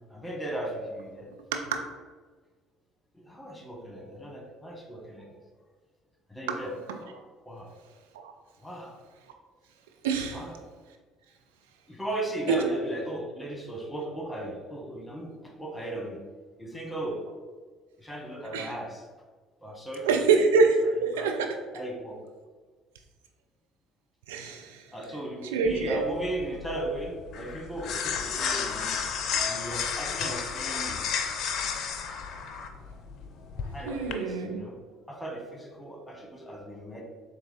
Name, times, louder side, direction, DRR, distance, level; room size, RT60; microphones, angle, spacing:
voice 1, 0.1-1.3 3.1-5.4 6.3-6.7 7.4-7.7 8.6-9.0 10.3-10.6 11.9-16.2 16.6-17.2 18.0-19.0 19.6-20.3 21.2-21.3 21.7-22.2 24.9-29.1 29.4-31.0 33.7-34.8 35.1-37.0, right 1 dB, 10° left, 0 dB, 1.1 m, -36 dB
voice 2, 10.0-10.4 12.5-12.6 18.5-18.7 20.0-21.3 24.3-24.8 25.5-26.0 33.9-34.6, right 4 dB, 75° right, 4 dB, 0.4 m, -25 dB
sound 1, 25.7-34.1, left 6 dB, 55° left, 0.4 m, -32 dB
3.8 x 2.9 x 3.7 m, 1.4 s
hypercardioid pair, 55°, 0 cm